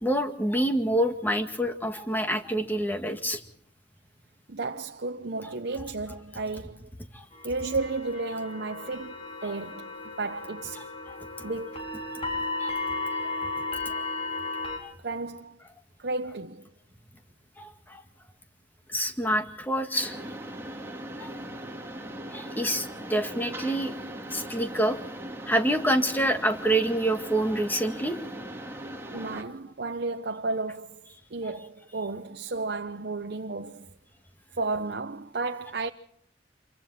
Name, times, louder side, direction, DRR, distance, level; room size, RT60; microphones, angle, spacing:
voice 1, 0.0-3.4 7.1-7.2 11.1-11.2 12.6-12.7 14.8-14.9 17.6-18.0 18.9-20.2 21.2-21.3 22.3-23.9 24.3-25.0 25.5-28.2, right 1 dB, 10° left, 2.0 m, -27 dB
voice 2, 4.5-6.9 7.4-10.8 11.4-11.9 15.0-15.6 16.0-16.7 29.1-31.1 31.3-33.9 34.6-35.9, right 3 dB, 65° right, 0.8 m, -33 dB
sound 1, 7.3-14.8, left 3 dB, 35° left, 4.6 m, -34 dB
Mechanisms, 19.9-29.4, right 1 dB, 15° right, 2.4 m, -39 dB
26.5 x 24.0 x 4.2 m
head